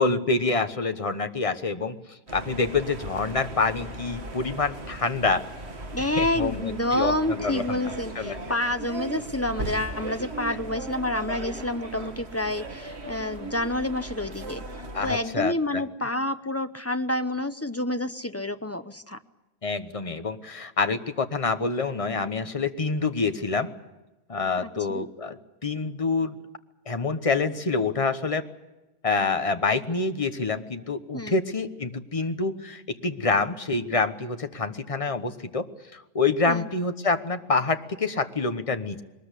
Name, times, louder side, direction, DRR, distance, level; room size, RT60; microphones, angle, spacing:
voice 1, 0.0-5.4 6.0-7.8 8.1-8.4 14.9-15.8 19.6-23.7 24.3-26.3 26.9-28.4 29.0-35.7 35.9-39.0, left 4 dB, 35° left, 9 dB, 1.2 m, -27 dB
sound 1, 2.3-15.1, right 2 dB, 90° right, 2.2 m, -37 dB
voice 2, 5.9-14.6 15.0-19.2 24.9-25.1 31.1-31.4 36.5-36.7, left 1 dB, 15° left, 9 dB, 0.7 m, -28 dB
21.5 x 20.0 x 8.3 m, 1.1 s
omnidirectional pair, 1.1 m